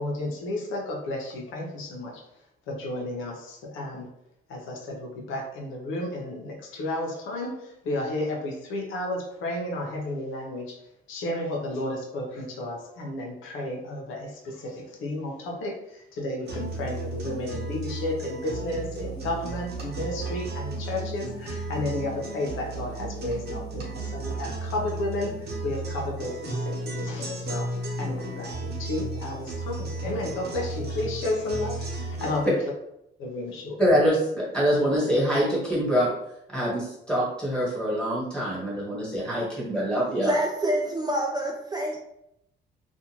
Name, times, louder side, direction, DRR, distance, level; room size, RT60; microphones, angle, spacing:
voice 1, 0.0-2.2 2.7-4.1 4.5-10.8 11.1-27.7 28.0-32.5 33.2-33.8, left 1 dB, 85° left, -1 dB, 0.6 m, -32 dB
sound 1, 16.4-32.4, right 2 dB, 55° right, 0.8 m, -34 dB
voice 2, 33.8-36.1 36.5-40.3, equal, 5° left, -6 dB, 1.3 m, -24 dB
voice 3, 40.2-42.0, right 1 dB, 20° right, 0 dB, 0.3 m, -26 dB
2.5 x 2.2 x 2.9 m, 0.80 s
cardioid pair, 90°, 20 cm